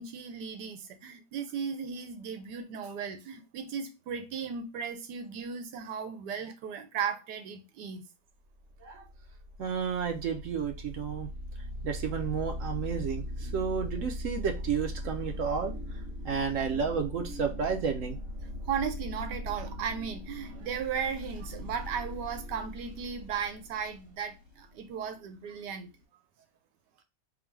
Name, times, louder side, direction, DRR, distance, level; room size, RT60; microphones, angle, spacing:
voice 1, 0.0-8.0 18.7-25.9, right 7 dB, 85° right, 1.3 m, -36 dB
sound 1, 8.6-26.0, left 1 dB, 35° right, 1.4 m, -40 dB
voice 2, 9.6-11.3 11.8-15.7 16.2-18.2, right 6 dB, 60° right, 0.9 m, -31 dB
3.8 x 2.2 x 4.4 m
omnidirectional pair, 1.8 m